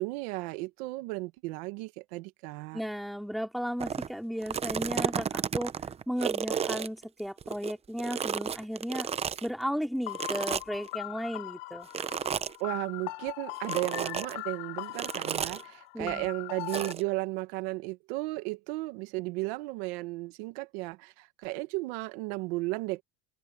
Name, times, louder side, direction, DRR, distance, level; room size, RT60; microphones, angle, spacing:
voice 1, 0.0-2.8 12.6-23.0, right 23 dB, 85° right, 1.4 m, -34 dB
voice 2, 2.7-5.7 6.1-9.1 9.4-11.9 15.9-16.3, equal, ahead, 2.9 m, -34 dB
sound 1, 3.8-4.1 4.4-7.7 8.0-9.5 10.1-10.9 11.9-12.6 13.6-14.3 15.0-15.6 16.7-17.0, right 7 dB, 20° right, 0.6 m, -32 dB
sound 2, 10.1-16.9, left 27 dB, 80° left, 4.6 m, -40 dB
open air
cardioid pair, 145°, 30 cm